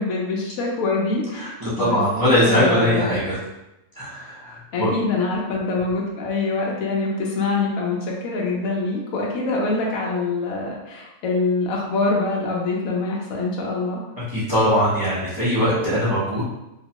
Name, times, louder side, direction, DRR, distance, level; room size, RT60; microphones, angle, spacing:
voice 1, 0.0-2.0 2.3-3.1 4.7-8.0 8.2-14.0, left 3 dB, 65° left, -2 dB, 1.0 m, -24 dB
voice 2, 1.4-3.4 4.0-4.9 14.3-16.4, equal, 30° right, -10 dB, 0.4 m, -21 dB
3.0 x 2.1 x 2.8 m, 0.94 s
omnidirectional pair, 1.7 m